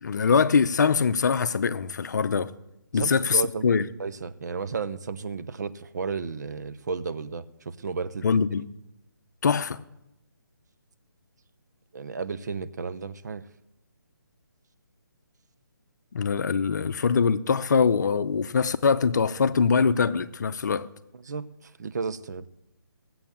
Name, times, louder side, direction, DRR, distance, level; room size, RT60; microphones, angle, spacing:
voice 1, 0.0-2.5 2.9-3.9 8.2-8.7 9.4-9.8 16.1-20.9, left 5 dB, 55° left, 0.7 m, -23 dB
voice 2, 2.9-8.4 11.9-13.5 21.1-22.5, right 5 dB, 55° right, 0.8 m, -33 dB
16.5 x 7.8 x 7.2 m
hypercardioid pair, 155°, 11 cm